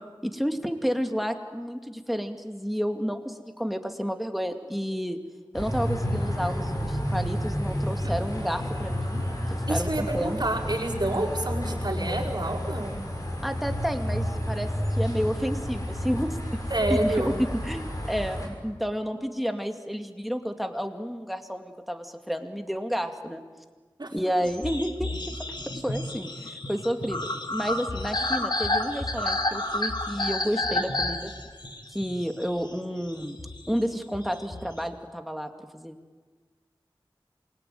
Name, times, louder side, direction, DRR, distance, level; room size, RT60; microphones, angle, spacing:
voice 1, 0.2-5.2 5.5-10.4 13.4-16.4 16.9-23.4 24.1-25.4 25.7-31.3 31.9-33.4 33.7-35.9, equal, ahead, 5 dB, 2.4 m, -31 dB
sound 1, 5.5-18.5, equal, 40° left, 6.9 m, -30 dB
voice 2, 9.7-12.9 16.7-17.4 24.0-24.1, right 1 dB, 55° right, 0 dB, 5.1 m, -28 dB
sound 2, 24.5-34.9, left 2 dB, 60° left, 2.5 m, -31 dB
28.0 x 22.0 x 9.3 m, 1.4 s
wide cardioid pair, 50°, 9 cm